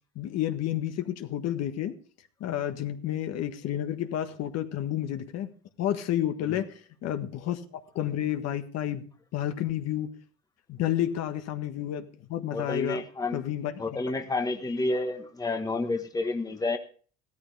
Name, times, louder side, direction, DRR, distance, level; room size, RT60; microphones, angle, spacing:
voice 1, 0.1-1.9 2.4-5.5 5.8-9.1 9.3-10.1 10.7-13.0 13.3-14.0, left 11 dB, 55° left, 8 dB, 1.5 m, -30 dB
voice 2, 12.5-13.4 13.8-16.8, left 2 dB, 10° left, 6 dB, 1.3 m, -30 dB
15.5 x 13.5 x 3.4 m, 0.41 s
cardioid pair, 130°, 31 cm